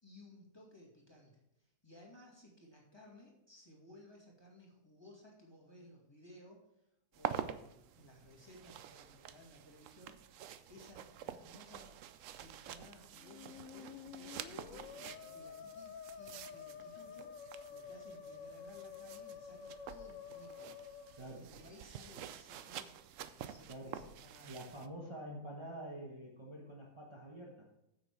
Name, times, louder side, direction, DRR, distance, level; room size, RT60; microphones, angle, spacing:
voice 1, 0.0-6.6 7.1-12.1 12.4-14.9 15.3-17.3 17.7-22.9 23.3-24.6, left 1 dB, 15° left, -2 dB, 2.3 m, -59 dB
sound 1, 7.1-24.9, right 10 dB, 65° right, 0.9 m, -48 dB
Musical instrument, 13.2-21.9, left 7 dB, 65° left, 1.0 m, -50 dB
voice 2, 21.2-21.5 23.7-24.0 24.4-27.7, right 1 dB, 20° right, -2 dB, 1.4 m, -47 dB
9.4 x 7.5 x 4.8 m, 0.86 s
omnidirectional pair, 1.6 m